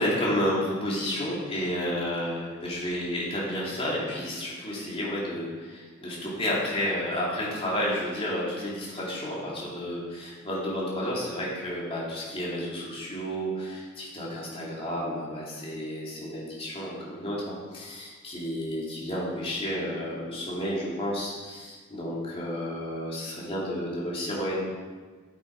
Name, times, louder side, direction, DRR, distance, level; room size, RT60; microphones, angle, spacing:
voice 1, 0.0-24.6, equal, 30° left, -6 dB, 2.7 m, -31 dB
8.5 x 8.3 x 4.7 m, 1.4 s
head